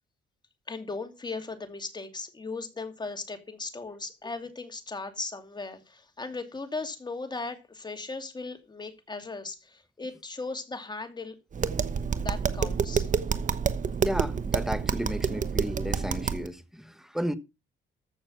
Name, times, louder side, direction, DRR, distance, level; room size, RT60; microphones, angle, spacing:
voice 1, 0.7-11.3 12.2-13.4 13.7-13.9, left 3 dB, 20° left, 2.8 m, -37 dB
Tap, 11.5-16.5, right 6 dB, 40° right, 1.1 m, -28 dB
voice 2, 14.0-17.4, equal, ahead, 1.3 m, -33 dB
14.5 x 6.3 x 5.7 m
cardioid pair, 90°, 20 cm